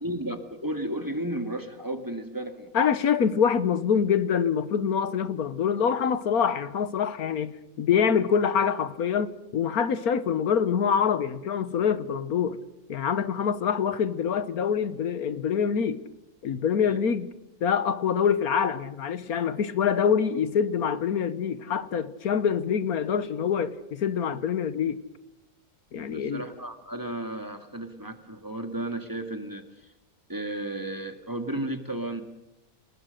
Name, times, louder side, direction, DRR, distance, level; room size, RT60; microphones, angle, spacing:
voice 1, 0.0-2.7 16.8-17.0 26.1-29.9 30.3-32.2, right 1 dB, 15° right, 1.9 m, -33 dB
voice 2, 2.7-12.6 12.9-16.0 16.4-17.3 17.6-25.0 25.9-26.4, left 7 dB, 80° left, 1.5 m, -25 dB
27.5 x 20.5 x 6.6 m
omnidirectional pair, 1.6 m